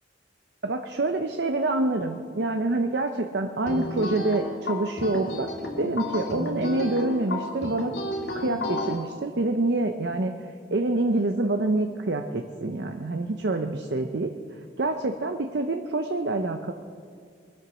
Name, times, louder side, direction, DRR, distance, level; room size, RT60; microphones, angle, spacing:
voice 1, 0.6-5.5 5.8-7.9 8.3-10.3 10.7-14.3 14.8-16.7, right 2 dB, 60° right, 6 dB, 0.7 m, -26 dB
sound 1, 3.7-8.9, left 1 dB, 70° left, 2.3 m, -32 dB
23.0 x 7.9 x 6.2 m, 2.1 s
head